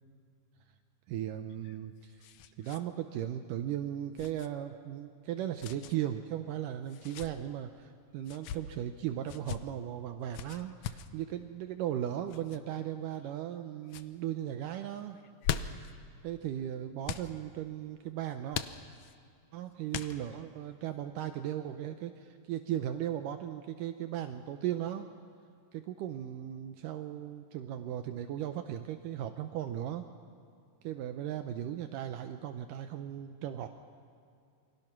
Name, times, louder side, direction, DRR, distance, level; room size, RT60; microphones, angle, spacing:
voice 1, 1.1-2.3 2.6-15.2 16.2-18.6 19.5-25.1 25.7-30.1 30.8-33.7, right 11 dB, 75° right, 7 dB, 2.3 m, -37 dB
sound 1, 1.5-2.8 3.1-3.2 4.2-4.5 5.6-6.0 6.9-7.3 8.2-8.6 9.3-9.6 10.3-11.1 12.3-12.6 13.2-13.6 13.9-14.1 15.2-15.9 17.0-17.3 18.5-19.2 19.9-20.4, left 10 dB, 70° left, 1.8 m, -39 dB
28.5 x 23.5 x 6.0 m, 2.4 s
omnidirectional pair, 4.0 m